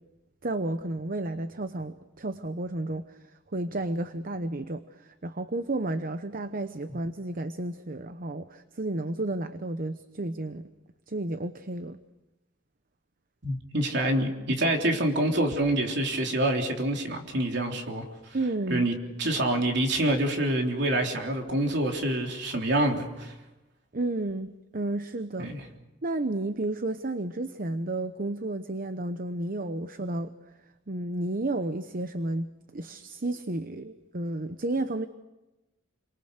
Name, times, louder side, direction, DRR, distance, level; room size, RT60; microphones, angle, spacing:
voice 1, 0.4-3.2 3.5-10.7 11.1-12.0 18.3-18.9 23.9-25.5 26.0-30.3 30.9-35.1, right 2 dB, 45° right, 10 dB, 0.9 m, -32 dB
voice 2, 13.4-18.0 18.7-23.3 25.4-25.6, right 1 dB, 65° right, 2 dB, 3.7 m, -26 dB
30.0 x 23.5 x 6.6 m, 1.0 s
head